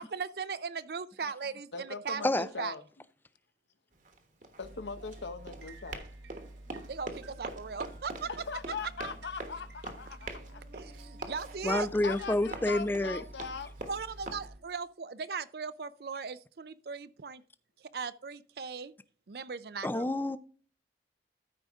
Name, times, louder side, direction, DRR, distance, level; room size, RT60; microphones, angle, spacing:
voice 1, 0.0-2.7 6.9-8.3 10.7-11.9 13.9-17.4 17.9-18.9 19.3-20.1, right 5 dB, 60° right, 0.5 m, -38 dB
voice 2, 1.7-2.8 4.6-6.0 8.5-10.6 12.0-13.7, left 4 dB, 85° left, 0.9 m, -40 dB
Run, 3.9-14.5, right 2 dB, 45° right, 1.2 m, -45 dB
sound 1, 4.6-14.6, right 1 dB, 85° right, 1.5 m, -50 dB
voice 3, 11.6-13.2 19.8-20.4, left 1 dB, 10° left, 0.4 m, -28 dB
13.5 x 5.0 x 3.5 m
head